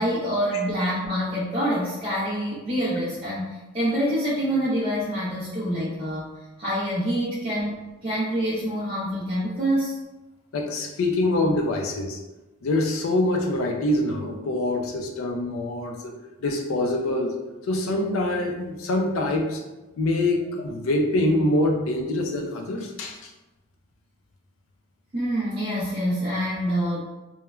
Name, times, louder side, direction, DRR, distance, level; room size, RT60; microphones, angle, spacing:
voice 1, 0.0-6.3 6.6-7.8 8.0-10.0 25.1-27.0, equal, 25° right, -9 dB, 0.5 m, -26 dB
voice 2, 10.5-12.2 12.6-16.1 16.4-17.4 17.7-19.6 20.0-23.3, left 1 dB, 75° left, 2 dB, 0.4 m, -25 dB
3.0 x 2.1 x 2.3 m, 1.1 s
head